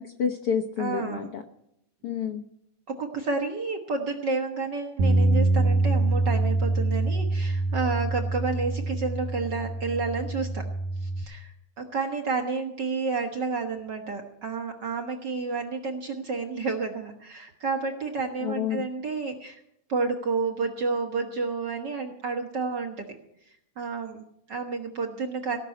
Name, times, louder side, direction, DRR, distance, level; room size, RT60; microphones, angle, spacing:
voice 1, 0.0-1.4 2.0-2.4 18.4-18.9, left 7 dB, 65° left, 4 dB, 1.5 m, -29 dB
voice 2, 0.8-1.3 2.9-10.7 11.0-19.6 19.9-23.0 23.5-25.6, right 4 dB, 55° right, 4 dB, 1.3 m, -30 dB
Bass guitar, 5.0-11.2, right 2 dB, 85° right, 2.5 m, -25 dB
17.5 x 6.1 x 9.4 m, 0.78 s
omnidirectional pair, 3.4 m